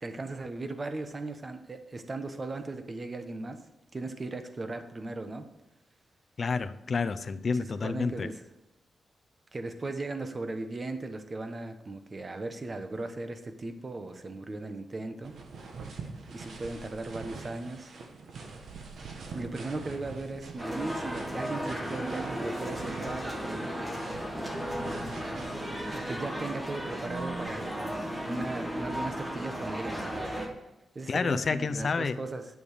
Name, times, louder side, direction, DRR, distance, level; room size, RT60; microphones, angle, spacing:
voice 1, 0.0-3.6 3.9-5.5 7.5-8.4 9.5-15.4 16.3-17.9 19.3-23.9 25.9-30.3 30.9-32.4, right 2 dB, 30° right, 8 dB, 1.0 m, -37 dB
voice 2, 6.4-8.3 31.1-32.2, left 4 dB, 40° left, 11 dB, 0.6 m, -29 dB
sound 1, 15.2-26.5 27.1-28.6, right 4 dB, 70° right, 1.6 m, -44 dB
sound 2, 20.6-30.5, equal, 10° right, 1.7 m, -35 dB
11.0 x 7.0 x 5.0 m, 0.98 s
wide cardioid pair, 150°, 0 cm